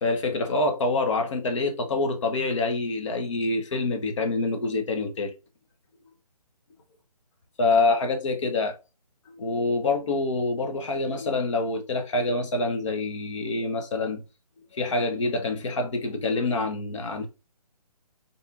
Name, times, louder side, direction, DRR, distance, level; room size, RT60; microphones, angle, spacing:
voice 1, 0.0-5.3 7.6-8.7 9.4-14.2 14.7-17.3, left 3 dB, 50° left, 1.1 m, -26 dB
4.5 x 3.6 x 2.6 m
figure-of-eight pair, 145°, 20 cm